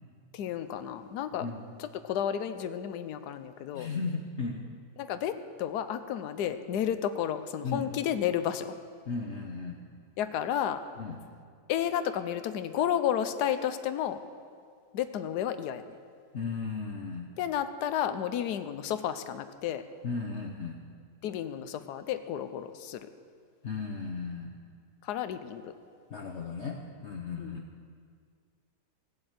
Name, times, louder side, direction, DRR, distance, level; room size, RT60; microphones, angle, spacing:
voice 1, 0.3-1.5 1.8-3.9 5.0-8.7 10.2-10.8 11.7-14.2 14.9-15.8 17.4-19.8 21.2-23.1 25.0-25.7 27.4-27.5, left 10 dB, 75° left, 10 dB, 1.2 m, -32 dB
voice 2, 3.7-4.7 7.6-7.9 9.1-9.8 11.0-11.2 16.3-17.3 20.0-20.8 23.6-24.6 26.1-27.7, left 4 dB, 50° left, 2 dB, 1.0 m, -35 dB
17.0 x 7.8 x 8.0 m, 2.1 s
omnidirectional pair, 1.9 m